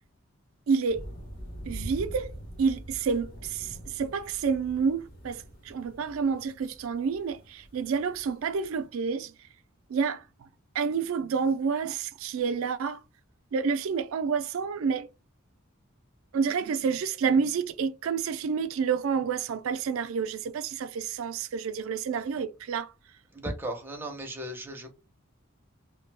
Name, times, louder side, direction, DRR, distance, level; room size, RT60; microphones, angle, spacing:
voice 1, 0.7-1.1 1.7-2.3 2.6-9.3 9.9-10.5 10.7-13.0 13.5-15.1 16.3-22.9, right 5 dB, 70° right, 0.3 m, -29 dB
sound 1, 0.9-8.8, equal, 45° left, 0.8 m, -44 dB
voice 2, 23.3-24.9, right 1 dB, 10° right, 0.5 m, -36 dB
2.3 x 2.1 x 3.2 m
head